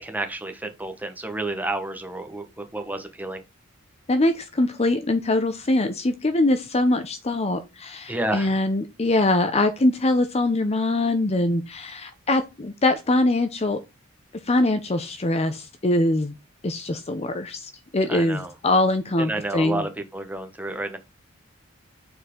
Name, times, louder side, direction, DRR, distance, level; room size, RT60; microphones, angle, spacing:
voice 1, 0.0-3.4 8.1-8.6 18.1-18.5 19.3-21.0, right 2 dB, 10° right, 1.2 m, -30 dB
voice 2, 4.1-13.8 14.5-16.3 16.6-19.9, left 2 dB, 30° left, 0.7 m, -23 dB
6.8 x 4.6 x 3.7 m
head